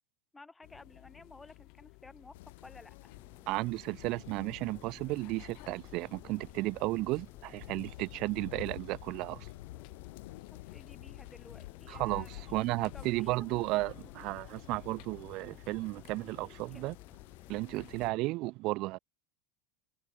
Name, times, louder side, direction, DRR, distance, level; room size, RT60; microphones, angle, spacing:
voice 1, 0.3-2.3 2.6-3.1 10.7-13.6 16.7-16.8, left 3 dB, 10° left, 1.2 m, -54 dB
sound 1, 0.6-18.1, left 29 dB, 50° left, 3.3 m, -56 dB
sound 2, 2.3-18.1, left 18 dB, 75° left, 2.3 m, -50 dB
Subway metro underground, 3.2-18.2, left 11 dB, 30° left, 4.4 m, -56 dB
voice 2, 3.5-9.5 11.9-17.0 17.5-19.0, right 21 dB, 45° right, 0.8 m, -34 dB
supercardioid pair, 160°, 0 cm